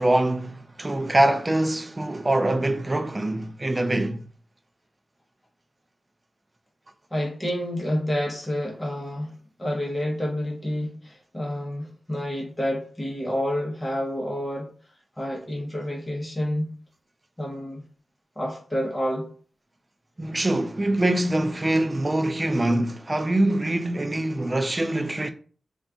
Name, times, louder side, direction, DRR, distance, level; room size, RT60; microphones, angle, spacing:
voice 1, 0.0-4.3 20.2-25.3, right 1 dB, 25° right, 0.3 m, -24 dB
voice 2, 7.1-9.3 9.6-14.7 15.2-16.7 17.4-17.8 18.4-19.3, equal, 15° left, 0.8 m, -29 dB
2.4 x 2.2 x 3.5 m
wide cardioid pair, 80°, 0 cm